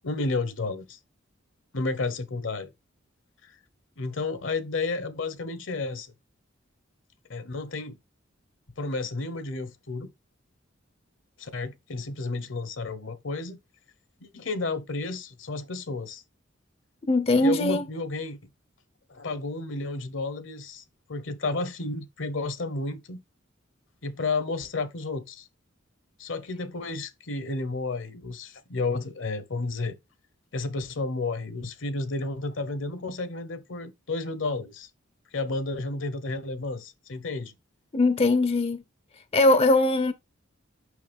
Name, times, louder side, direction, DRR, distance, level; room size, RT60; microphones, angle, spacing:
voice 1, 0.0-1.0 1.7-2.7 3.4-3.5 4.0-6.1 7.3-8.0 8.8-10.1 11.4-13.6 14.2-16.2 17.4-18.4 19.1-20.8 21.1-23.2 24.0-25.5 26.2-30.0 30.5-34.9 35.3-37.5, left 3 dB, 70° left, 1.0 m, -32 dB
voice 2, 17.1-17.8 37.9-38.8 39.3-40.1, left 2 dB, 30° left, 0.5 m, -21 dB
6.3 x 5.7 x 3.5 m
head